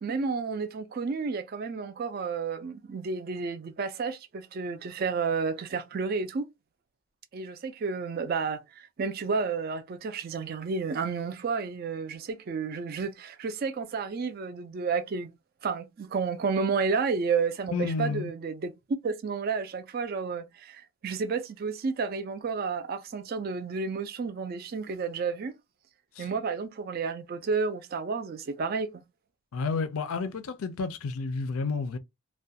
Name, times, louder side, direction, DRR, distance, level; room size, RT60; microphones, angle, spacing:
voice 1, 0.0-6.5 7.3-15.3 15.6-25.6 26.2-29.0, right 5 dB, 40° right, 0.3 m, -31 dB
voice 2, 17.7-18.3 26.2-26.3 29.5-32.0, left 4 dB, 70° left, 0.4 m, -31 dB
2.4 x 2.2 x 2.7 m
head